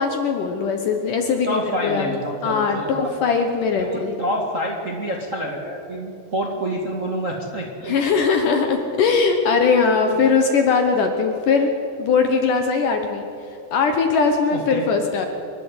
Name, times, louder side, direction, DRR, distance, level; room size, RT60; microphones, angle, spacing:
voice 1, 0.0-2.1 2.4-4.2 7.9-11.7 12.0-13.3 13.7-15.3, left 5 dB, 65° left, 5 dB, 2.3 m, -20 dB
voice 2, 1.4-3.1 3.8-8.0 8.2-8.4 14.5-14.8, equal, 35° right, -1 dB, 1.3 m, -28 dB
26.5 x 12.0 x 8.2 m, 2.7 s
omnidirectional pair, 4.8 m